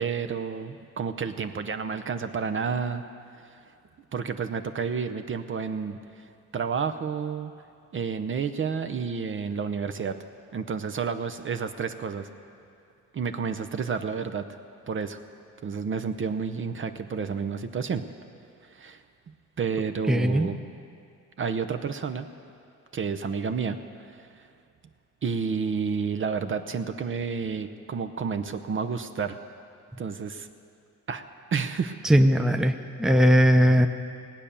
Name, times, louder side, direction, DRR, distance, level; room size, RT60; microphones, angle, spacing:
voice 1, 0.0-3.0 4.1-6.3 6.5-7.5 7.9-10.1 10.5-12.3 13.1-14.4 14.9-15.2 15.6-18.0 18.6-19.0 19.6-20.6 21.4-22.3 22.9-23.8 24.1-24.5 25.2-29.4 30.0-30.5 31.1-31.2 31.5-32.0, right 6 dB, 40° right, 8 dB, 0.7 m, -30 dB
voice 2, 20.1-20.5 32.0-33.9, equal, ahead, 6 dB, 0.7 m, -19 dB
18.0 x 8.8 x 6.9 m, 2.5 s
cardioid pair, 90°, 30 cm